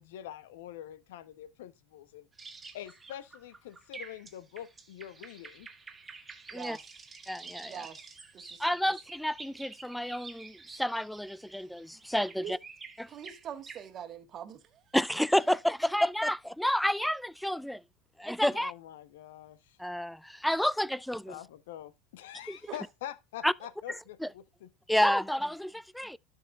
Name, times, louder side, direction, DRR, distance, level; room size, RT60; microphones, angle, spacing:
voice 1, 0.0-2.3 2.7-5.7 18.5-19.8 21.3-24.7, left 11 dB, 75° left, 0.8 m, -45 dB
sound 1, 2.3-13.9, right 4 dB, 20° right, 1.5 m, -49 dB
voice 2, 6.5-6.8 7.6-8.0 8.3-8.6 12.4-12.5 13.1-14.8 22.7-22.8, right 9 dB, 40° right, 1.5 m, -43 dB
voice 3, 7.3-7.9 8.6-12.6 13.0-13.1 14.9-17.8 18.2-18.7 19.8-21.4 22.5-22.6 23.4-23.5 24.2-24.3 24.9-26.2, equal, ahead, 0.3 m, -30 dB
12.0 x 5.4 x 2.4 m
hypercardioid pair, 95°, 0 cm